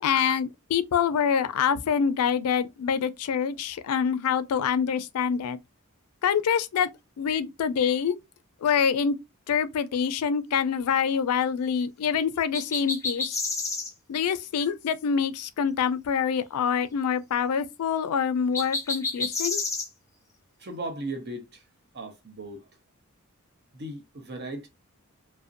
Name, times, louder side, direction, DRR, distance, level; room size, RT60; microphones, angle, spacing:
voice 1, 0.0-5.6 6.2-6.9 7.2-8.2 8.6-9.2 9.5-13.4 14.1-19.6, left 7 dB, 80° left, 0.4 m, -26 dB
sound 1, 12.5-13.9 18.5-19.9, left 3 dB, 15° left, 0.7 m, -29 dB
voice 2, 20.6-21.7 21.9-22.7 23.7-24.7, right 2 dB, 50° right, 0.8 m, -37 dB
2.5 x 2.1 x 2.5 m
head